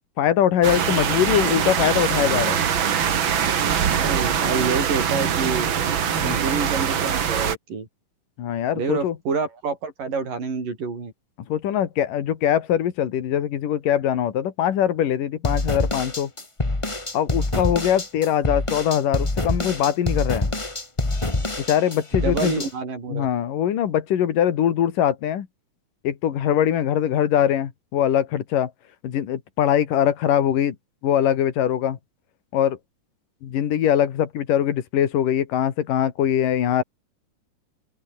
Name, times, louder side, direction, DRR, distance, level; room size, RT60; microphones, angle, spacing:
voice 1, 0.2-2.6 6.2-6.3 8.4-9.2 11.5-16.3 17.1-20.5 21.7-22.6 23.1-25.5 26.0-28.7 29.0-30.8 31.0-32.0 32.5-32.8 33.4-36.8, left 10 dB, 80° left, 3.7 m, -22 dB
sound 1, 0.6-7.6, right 8 dB, 45° right, 1.9 m, -23 dB
voice 2, 3.9-5.7 6.2-7.9 8.7-11.1 17.5-17.7 22.1-23.3, right 4 dB, 80° right, 7.7 m, -27 dB
sound 2, 15.4-22.7, left 2 dB, 15° left, 1.3 m, -26 dB
omnidirectional pair, 3.8 m